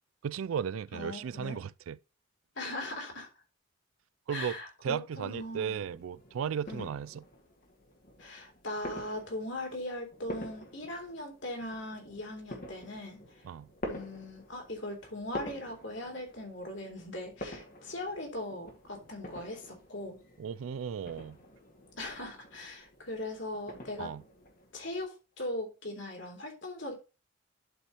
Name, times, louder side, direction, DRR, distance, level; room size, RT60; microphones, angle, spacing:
voice 1, 0.2-2.0 4.3-4.6 4.8-7.2 13.4-13.7 20.4-21.4 24.0-24.2, right 7 dB, 80° right, 0.3 m, -35 dB
voice 2, 0.9-1.6 2.6-3.3 4.3-5.8 6.7-6.9 8.2-13.2 13.9-20.2 22.0-24.1 24.7-26.9, left 1 dB, 60° left, 3.1 m, -39 dB
sound 1, 5.4-25.0, left 1 dB, 45° left, 2.1 m, -48 dB
11.5 x 5.4 x 3.1 m
head